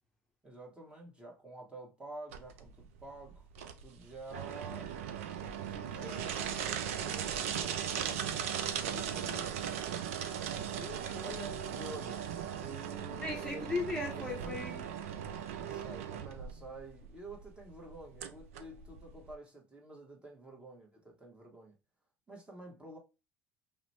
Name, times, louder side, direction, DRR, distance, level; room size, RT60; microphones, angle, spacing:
voice 1, 0.4-3.4 3.8-4.9 5.7-8.2 8.7-9.5 11.6-12.3 12.6-14.7 15.5-21.7 22.3-23.0, right 1 dB, 15° right, 1.3 m, -49 dB
sound 1, 2.3-19.3, right 9 dB, 80° right, 0.4 m, -38 dB
voice 2, 10.8-11.8 13.2-14.9, left 3 dB, 10° left, 0.8 m, -38 dB
2.8 x 2.1 x 4.1 m
hypercardioid pair, 75°, 7 cm